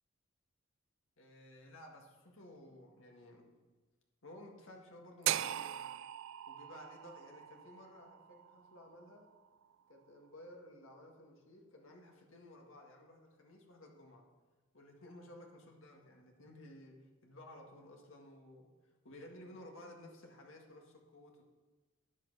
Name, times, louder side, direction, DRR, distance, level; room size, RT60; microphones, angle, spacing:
voice 1, 1.2-3.5 4.2-5.8 6.5-9.3 9.9-14.3 14.7-16.9 17.2-21.4, left 1 dB, 70° left, 0 dB, 1.8 m, -55 dB
sound 1, 5.3-9.4, right 12 dB, 65° right, 0.3 m, -40 dB
13.0 x 9.7 x 4.1 m, 1.3 s
head